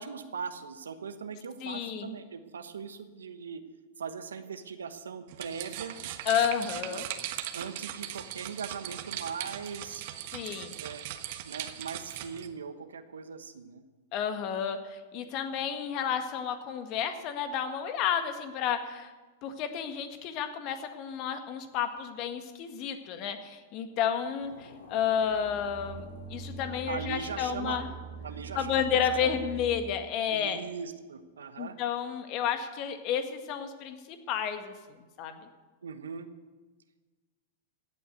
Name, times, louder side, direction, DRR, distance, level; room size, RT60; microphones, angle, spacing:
voice 1, 0.0-3.6 4.0-6.0 6.9-7.0 7.5-10.1 10.8-11.1 11.4-13.8 26.9-27.8 28.2-29.5 30.3-31.8 35.8-36.3, right 6 dB, 80° right, 9 dB, 1.1 m, -40 dB
voice 2, 1.6-2.2 6.2-7.0 10.3-10.8 14.1-19.1 19.4-27.9 28.5-30.6 31.6-34.7 35.2-35.4, left 8 dB, 45° left, 8 dB, 1.7 m, -31 dB
sound 1, 5.3-12.5, right 12 dB, 55° right, 1.3 m, -39 dB
sound 2, 24.4-29.5, left 3 dB, 75° left, 3.4 m, -51 dB
sound 3, 25.1-30.2, right 5 dB, 20° right, 1.1 m, -43 dB
16.0 x 8.4 x 8.2 m, 1.3 s
hypercardioid pair, 105°, 0 cm